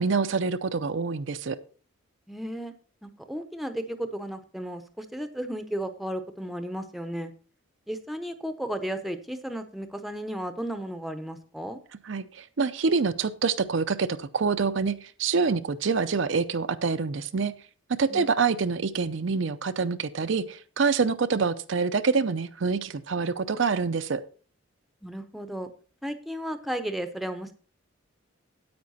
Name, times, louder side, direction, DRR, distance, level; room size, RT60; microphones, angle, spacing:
voice 1, 0.0-1.6 12.0-17.5 18.0-24.2, right 5 dB, 60° right, 11 dB, 0.5 m, -26 dB
voice 2, 2.3-2.7 3.0-7.3 7.9-11.8 18.1-18.2 25.0-25.7 26.0-27.5, right 1 dB, ahead, 8 dB, 0.7 m, -34 dB
9.5 x 8.7 x 4.1 m, 0.39 s
head